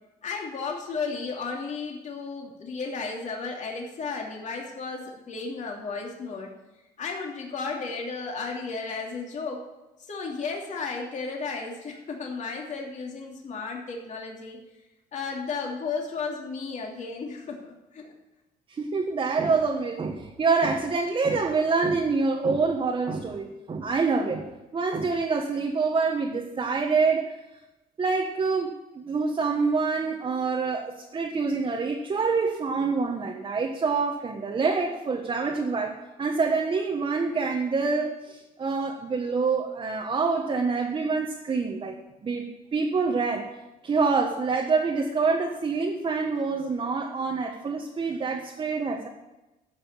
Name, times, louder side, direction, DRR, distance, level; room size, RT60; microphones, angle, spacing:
voice 1, 0.2-6.5 7.0-9.6 10.0-14.6 15.1-18.1, left 4 dB, 45° left, 0 dB, 2.9 m, -34 dB
voice 2, 18.7-27.3 28.0-43.5 43.8-49.1, right 4 dB, 30° right, 1 dB, 1.5 m, -26 dB
13.5 x 6.3 x 8.7 m, 1.0 s
cardioid pair, 110°, 17 cm